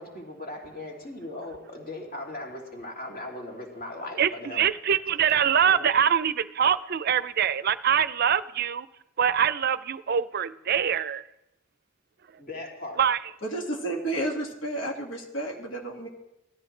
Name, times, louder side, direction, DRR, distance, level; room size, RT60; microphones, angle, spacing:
voice 1, 0.0-4.6 5.6-5.9 12.4-13.0, left 2 dB, 50° left, -1 dB, 2.9 m, -38 dB
voice 2, 4.2-8.9 9.2-11.2 13.0-13.2, right 8 dB, 55° right, 16 dB, 0.5 m, -24 dB
voice 3, 13.4-16.1, right 1 dB, 80° left, 0 dB, 2.2 m, -31 dB
18.0 x 13.5 x 3.3 m, 0.91 s
head